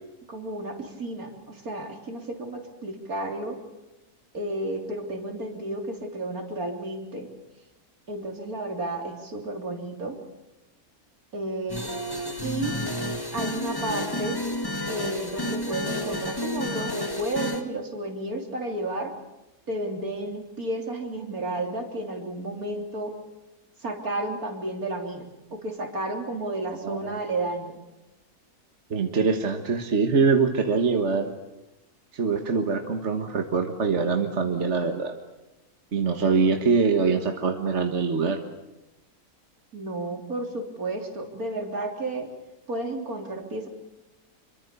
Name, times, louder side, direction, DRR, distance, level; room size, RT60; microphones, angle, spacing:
voice 1, 0.3-3.6 4.3-7.3 8.1-10.2 11.3-11.9 12.4-12.8 13.3-14.4 14.9-19.1 19.7-23.1 23.8-27.7 39.7-42.3 42.7-43.7, right 2 dB, 70° right, 3 dB, 3.9 m, -32 dB
sound 1, 11.7-17.6, left 1 dB, 15° left, 2.1 m, -31 dB
voice 2, 28.9-31.3 32.1-35.2 35.9-38.4, right 5 dB, 50° right, 5 dB, 1.8 m, -24 dB
26.5 x 24.0 x 6.9 m, 0.99 s
omnidirectional pair, 1.6 m